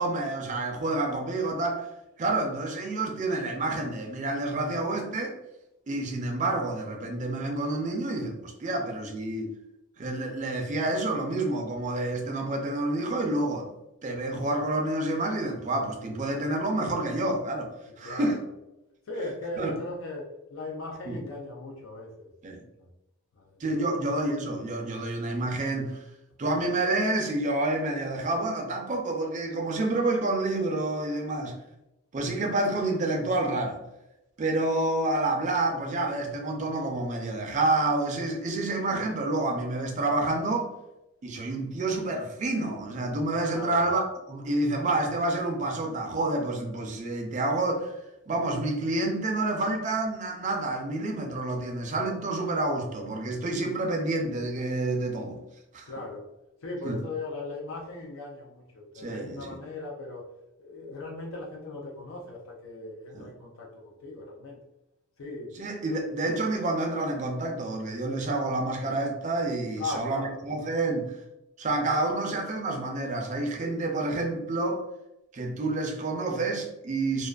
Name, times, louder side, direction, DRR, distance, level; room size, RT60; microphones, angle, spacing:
voice 1, 0.0-1.9 2.2-5.4 5.9-9.5 10.0-13.7 14.0-18.4 19.6-19.8 21.1-21.2 22.4-22.6 23.6-26.0 26.4-31.6 32.1-33.8 34.4-40.7 41.2-47.9 48.3-55.4 55.7-55.9 56.8-57.0 59.0-59.6 63.1-63.3 65.5-71.1 71.6-74.8 75.3-77.3, right 2 dB, 35° right, 0.4 m, -28 dB
voice 2, 18.0-18.5 19.1-22.3 23.5-24.0 43.5-43.9 55.9-56.3 56.6-60.3 60.6-64.6 65.2-65.6 65.9-66.1 69.8-70.4, left 2 dB, 80° left, 0.4 m, -38 dB
2.3 x 2.3 x 2.2 m
head